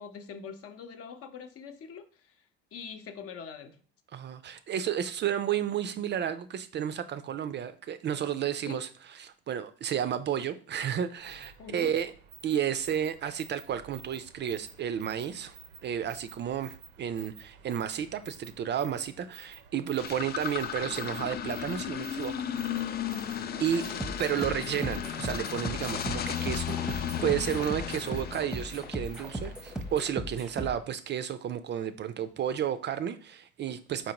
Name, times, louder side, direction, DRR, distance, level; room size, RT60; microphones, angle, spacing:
voice 1, 0.0-2.0 2.7-3.8 8.6-8.8 11.6-11.9 23.7-24.6, left 6 dB, 50° left, 7 dB, 0.8 m, -43 dB
voice 2, 4.1-12.1 12.4-22.3 23.6-23.8 24.2-34.1, right 9 dB, 40° right, 12 dB, 0.4 m, -32 dB
sound 1, 11.2-30.1, right 8 dB, 85° right, 0.6 m, -52 dB
sound 2, 20.0-29.5, left 9 dB, 35° left, 0.4 m, -35 dB
sound 3, 23.8-30.8, equal, ahead, 0.7 m, -38 dB
4.2 x 3.9 x 2.9 m, 0.43 s
supercardioid pair, 75°, 29 cm